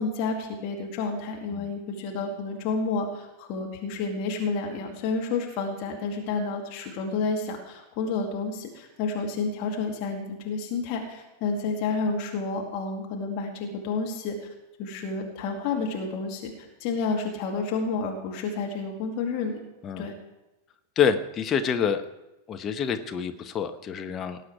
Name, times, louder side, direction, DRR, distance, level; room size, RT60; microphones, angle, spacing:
voice 1, 0.0-14.4 14.8-16.5 16.8-19.6 20.0-20.1, left 4 dB, 40° left, 1 dB, 2.3 m, -30 dB
voice 2, 21.0-22.0 22.5-24.4, left 7 dB, 25° left, 8 dB, 0.9 m, -27 dB
18.5 x 8.0 x 4.7 m, 0.96 s
figure-of-eight pair, 90°, 0 cm